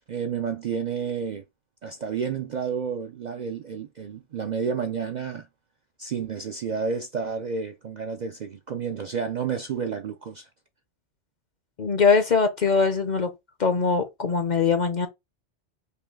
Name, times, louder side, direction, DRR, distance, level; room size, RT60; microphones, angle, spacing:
voice 1, 0.1-1.4 1.8-5.5 6.0-10.5, right 6 dB, 60° right, 0.5 m, -30 dB
voice 2, 11.8-13.3 13.6-15.1, left 5 dB, 50° left, 0.6 m, -22 dB
5.5 x 2.3 x 3.5 m
omnidirectional pair, 1.2 m